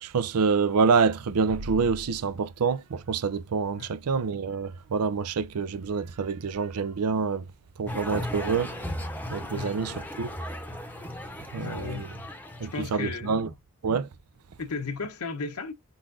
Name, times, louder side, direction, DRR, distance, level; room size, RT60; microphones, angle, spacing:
voice 1, 0.0-7.4 7.8-8.8 9.3-10.3 11.5-12.1 12.6-13.5 13.8-14.1, right 5 dB, 85° right, 0.5 m, -27 dB
sound 1, 7.9-12.9, left 1 dB, 10° left, 0.8 m, -36 dB
voice 2, 9.5-10.0 11.6-12.0 12.7-13.5 14.6-15.7, left 4 dB, 80° left, 0.9 m, -35 dB
4.8 x 3.9 x 2.5 m
head